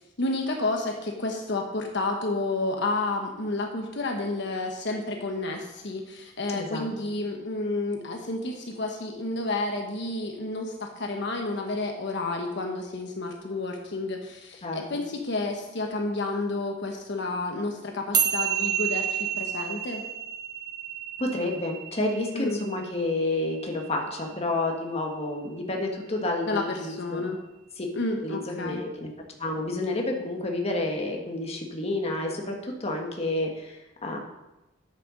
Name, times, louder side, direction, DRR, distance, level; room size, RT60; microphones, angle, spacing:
voice 1, 0.2-20.0 22.3-22.6 26.5-27.4 27.9-28.8, left 2 dB, 65° left, 2 dB, 1.2 m, -30 dB
voice 2, 6.5-6.9 14.6-14.8 21.2-27.3 27.8-27.9 28.2-29.1 29.4-34.2, left 2 dB, 35° left, 1 dB, 1.6 m, -30 dB
sound 1, 18.1-24.7, right 8 dB, 20° right, 1.0 m, -30 dB
9.1 x 6.7 x 6.4 m, 0.97 s
head